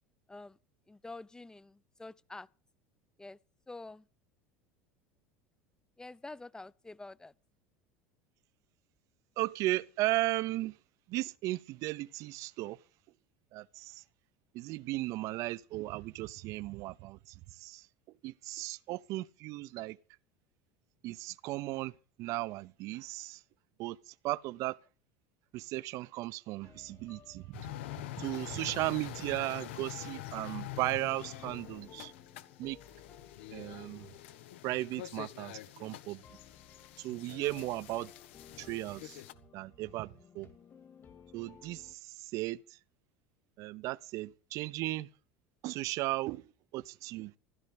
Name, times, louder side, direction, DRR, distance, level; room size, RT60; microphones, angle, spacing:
voice 1, 0.9-2.5 3.2-3.4 3.7-4.1 6.0-7.3, left 2 dB, 10° left, 0.7 m, -47 dB
voice 2, 9.4-10.8 11.1-12.8 13.5-14.0 14.5-17.9 18.2-20.0 21.0-23.4 23.8-24.8 25.5-27.7 28.2-32.1 32.6-32.8 33.5-34.1 34.6-36.4 37.0-38.1 38.6-39.2 39.5-40.5 41.3-42.8 43.6-45.1 45.6-47.4, right 18 dB, 60° right, 0.7 m, -36 dB
sound 1, 26.6-42.0, left 7 dB, 35° left, 2.2 m, -58 dB
sound 2, 27.5-39.3, left 14 dB, 75° left, 1.3 m, -46 dB
16.0 x 13.0 x 5.4 m
hypercardioid pair, 85°, 6 cm